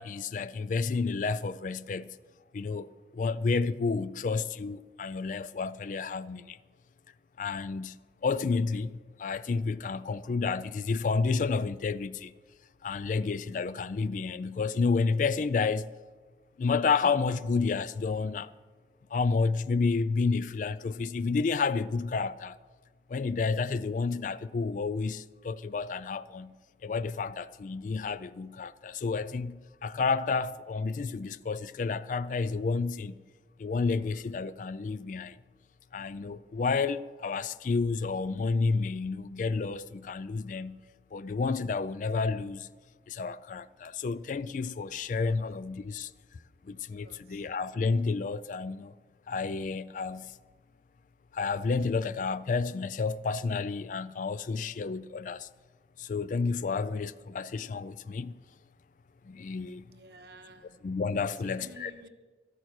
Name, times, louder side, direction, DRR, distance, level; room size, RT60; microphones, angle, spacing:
voice 1, 0.0-2.1 2.5-6.6 7.4-8.0 8.2-8.9 9.2-12.3 12.8-15.9 16.6-18.5 19.1-22.6 23.1-26.5 26.8-29.5 29.8-33.2 33.6-35.4 35.9-40.8 41.1-42.7 43.1-46.1 46.7-48.9 49.3-50.3 51.3-55.5 56.0-58.3 59.3-59.9 60.8-61.9, left 4 dB, 45° left, 0.3 m, -30 dB
voice 2, 46.7-47.5 59.9-60.8 61.3-62.1, right 2 dB, 60° right, 1.1 m, -52 dB
13.0 x 8.7 x 6.4 m
head